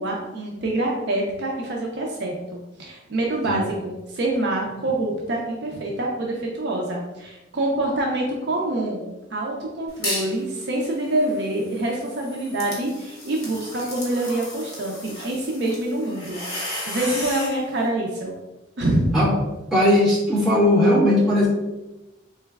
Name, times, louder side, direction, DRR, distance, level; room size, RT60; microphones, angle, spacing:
voice 1, 0.0-9.0 9.3-18.4 18.8-19.1, right 1 dB, 60° right, -1 dB, 0.5 m, -26 dB
sound 1, 9.9-10.4 10.8-17.6, left 1 dB, 55° left, 1.1 m, -34 dB
voice 2, 19.7-21.5, left 1 dB, ahead, -12 dB, 1.4 m, -18 dB
3.9 x 3.2 x 2.3 m, 1.0 s
head